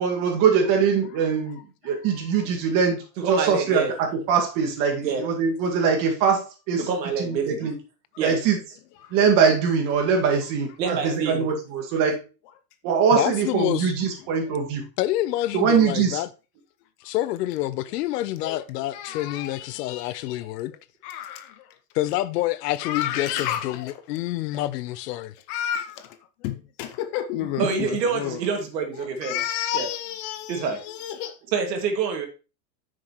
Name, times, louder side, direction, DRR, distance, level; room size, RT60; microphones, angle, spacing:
voice 1, 0.0-3.0 3.3-6.9 7.2-7.7 8.2-8.6 9.1-12.2 12.8-14.8 15.5-16.2 27.6-27.7, right 6 dB, 40° right, 2.1 m, -22 dB
voice 2, 3.2-4.0 5.0-5.2 6.9-7.7 8.2-8.4 10.8-11.5 27.6-29.4 29.7-29.9 30.5-30.8 31.5-32.3, right 5 dB, 90° right, 2.3 m, -26 dB
voice 3, 13.1-13.9 15.0-16.3 17.0-20.7 21.9-25.3, left 15 dB, 70° left, 0.8 m, -27 dB
voice 4, 18.9-20.5 21.0-21.7 22.8-23.9 25.5-28.4 29.0-31.4, left 11 dB, 35° left, 0.5 m, -31 dB
8.5 x 6.4 x 3.1 m
supercardioid pair, 155°, 49 cm